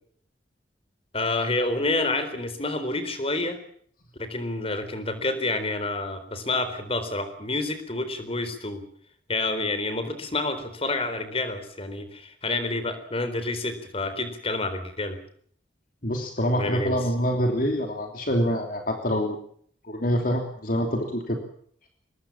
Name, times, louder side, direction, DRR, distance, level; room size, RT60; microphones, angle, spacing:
voice 1, 1.1-3.6 4.2-8.8 9.3-15.2 16.5-17.0, left 2 dB, 35° left, 11 dB, 3.9 m, -28 dB
voice 2, 16.0-19.4 19.8-21.4, equal, 50° left, 3 dB, 3.1 m, -26 dB
24.0 x 21.5 x 7.4 m, 0.62 s
head